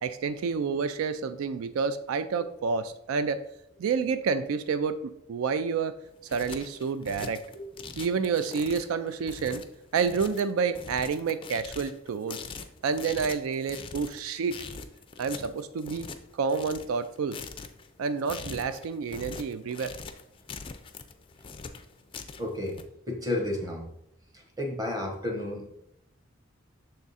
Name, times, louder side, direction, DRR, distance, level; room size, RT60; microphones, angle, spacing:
voice 1, 0.0-3.4 3.8-5.9 6.3-7.4 8.0-9.6 9.9-12.4 12.8-14.6 15.2-16.1 16.3-17.4 18.0-19.9, right 5 dB, 90° right, 12 dB, 0.4 m, -29 dB
sound 1, 6.0-22.8, left 5 dB, 25° left, 0.3 m, -43 dB
voice 2, 7.7-8.1 22.4-22.8 23.1-23.9 24.3-25.7, left 1 dB, 20° right, 2 dB, 1.0 m, -32 dB
6.5 x 3.6 x 4.1 m, 0.79 s
head